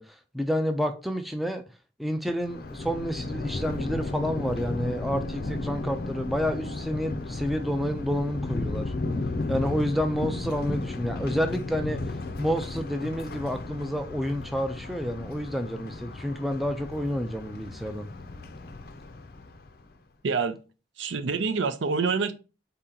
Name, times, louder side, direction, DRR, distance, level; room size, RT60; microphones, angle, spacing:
voice 1, 0.0-1.6 2.0-8.9 9.5-12.0 12.4-18.1, equal, ahead, 0.4 m, -29 dB
Thunder, 2.4-19.8, left 2 dB, 50° left, 0.5 m, -34 dB
voice 2, 20.2-20.6 21.0-22.3, right 5 dB, 80° right, 0.5 m, -26 dB
4.2 x 2.9 x 3.7 m
head